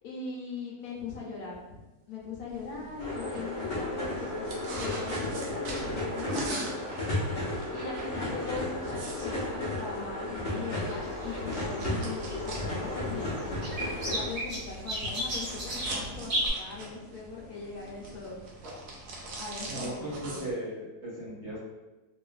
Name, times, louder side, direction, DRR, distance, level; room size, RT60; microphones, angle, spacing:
voice 1, 0.0-6.9 7.7-13.4 14.0-18.4 19.4-20.4, left 4 dB, 75° left, -4 dB, 1.1 m, -40 dB
sound 1, 2.5-20.5, right 1 dB, 80° right, 1.2 m, -43 dB
sound 2, 3.0-14.3, left 1 dB, 55° left, 0.7 m, -34 dB
sound 3, 10.7-16.5, equal, 65° right, 1.3 m, -35 dB
voice 2, 19.7-21.6, right 1 dB, 45° right, -9 dB, 1.2 m, -37 dB
2.9 x 2.4 x 2.3 m, 1.1 s
omnidirectional pair, 1.7 m